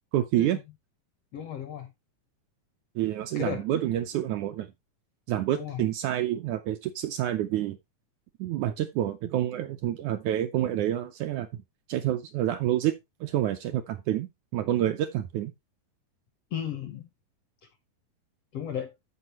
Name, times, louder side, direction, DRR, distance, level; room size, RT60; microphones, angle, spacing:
voice 1, 0.1-0.6 3.0-4.7 5.3-7.8 8.4-11.5 11.9-15.5, right 12 dB, 75° right, 1.8 m, -28 dB
voice 2, 1.3-1.9 3.3-3.7 5.5-5.8 16.5-17.0 18.5-18.9, left 8 dB, 70° left, 1.5 m, -34 dB
14.0 x 4.9 x 2.8 m
omnidirectional pair, 3.9 m